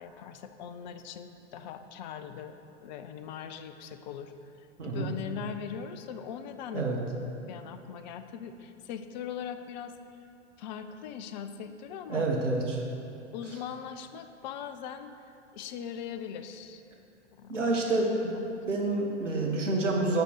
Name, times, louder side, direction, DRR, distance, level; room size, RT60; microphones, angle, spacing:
voice 1, 0.0-6.9 7.4-9.9 10.6-12.3 13.3-15.1 15.5-16.8 17.3-18.1 18.3-18.4, left 8 dB, 40° left, 9 dB, 0.5 m, -40 dB
voice 2, 4.8-5.1 6.7-7.0 12.1-12.8 17.5-18.3 18.7-20.2, right 2 dB, 75° right, -1 dB, 1.3 m, -28 dB
8.2 x 5.1 x 6.6 m, 2.7 s
figure-of-eight pair, 100°, 37 cm